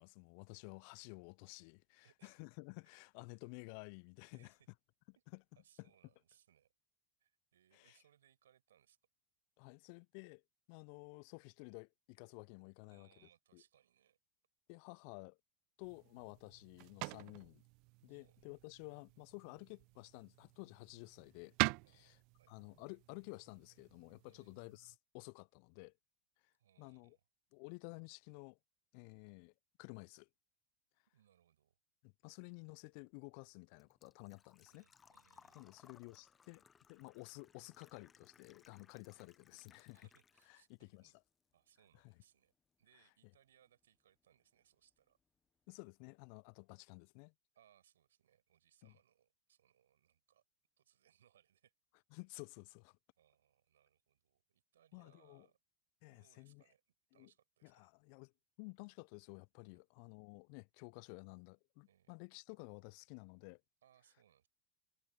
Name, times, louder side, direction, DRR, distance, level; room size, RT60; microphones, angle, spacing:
voice 1, 0.0-4.5 5.8-5.9 7.7-8.0 9.6-10.4 10.7-13.1 13.5-13.6 14.7-15.4 15.8-17.6 18.0-21.6 21.9-22.2 22.5-26.0 26.4-27.2 27.5-28.6 28.9-29.5 29.8-30.3 32.0-34.8 35.5-40.1 40.5-41.1 42.0-42.1 45.7-47.3 48.8-48.9 52.1-53.0 54.9-55.5 56.0-56.6 57.1-57.3 57.6-58.3 58.6-63.6, left 36 dB, 55° left, 0.7 m, -53 dB
voice 2, 2.0-2.4 4.3-4.6 5.1-5.2 5.6-6.7 7.2-9.0 12.9-14.2 18.1-18.6 21.8-22.5 24.3-24.6 26.6-27.2 31.1-31.8 34.7-35.7 38.7-38.9 39.9-41.2 41.5-42.5 42.8-45.2 47.5-50.4 50.8-51.7 53.2-55.6 56.0-57.9 59.6-59.8 61.9-62.1 63.8-64.5, right 10 dB, 75° right, 6.0 m, -72 dB
sound 1, 15.8-25.0, right 30 dB, 55° right, 0.4 m, -45 dB
Engine / Trickle dribble / Fill (with liquid), 32.9-40.8 41.1-42.1 42.4-42.5 44.4-44.5 44.7-45.0 45.4-45.5 45.7-45.8, left 6 dB, 25° left, 1.2 m, -67 dB
figure-of-eight pair, 80°, 0 cm